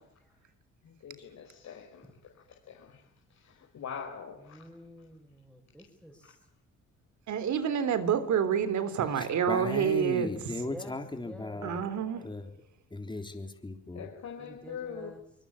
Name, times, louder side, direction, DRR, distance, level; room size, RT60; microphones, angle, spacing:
voice 1, 0.8-2.0 2.7-3.0 3.4-4.6 13.9-15.1, left 7 dB, 65° left, 2 dB, 5.0 m, -42 dB
voice 2, 4.4-6.1 10.7-11.0 11.2-12.2 14.4-15.2, equal, 5° right, -2 dB, 7.0 m, -49 dB
voice 3, 7.3-10.6 11.6-12.2, right 8 dB, 70° right, 13 dB, 3.3 m, -28 dB
voice 4, 9.5-11.8 12.2-12.5 12.9-14.1, left 2 dB, 15° left, 5 dB, 3.7 m, -36 dB
25.0 x 21.5 x 8.7 m, 0.70 s
cardioid pair, 90°, 30 cm